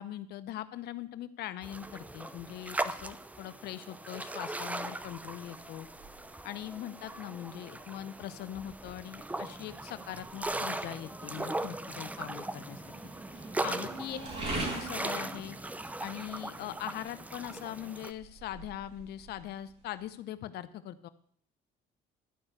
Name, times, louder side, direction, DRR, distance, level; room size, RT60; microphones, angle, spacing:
voice 1, 0.0-5.9 6.4-12.8 13.6-14.2 14.5-15.6 16.0-21.1, left 12 dB, 70° left, 13 dB, 0.7 m, -41 dB
Seashore light wave, 1.6-18.1, right 2 dB, 10° right, 0.6 m, -39 dB
sound 1, 4.6-20.1, right 2 dB, 35° right, 5.3 m, -45 dB
12.0 x 5.4 x 8.1 m, 0.62 s
cardioid pair, 110°, 17 cm